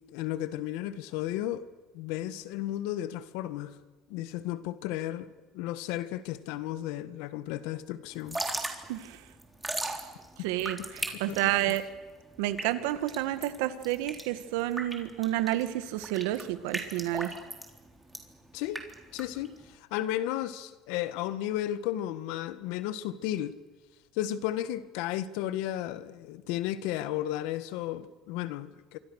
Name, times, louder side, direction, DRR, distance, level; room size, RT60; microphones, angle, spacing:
voice 1, 0.1-1.7 1.9-3.8 4.1-8.4 11.1-11.5 18.5-18.8 19.1-23.6 24.1-29.0, left 13 dB, 80° left, 1.5 m, -34 dB
Drip / Trickle dribble, 8.1-19.7, right 2 dB, 10° right, 3.8 m, -38 dB
voice 2, 8.9-9.2 9.8-10.0 10.4-11.8 12.4-17.3, right 14 dB, 90° right, 1.8 m, -30 dB
27.5 x 25.0 x 6.5 m
cardioid pair, 115°, 0 cm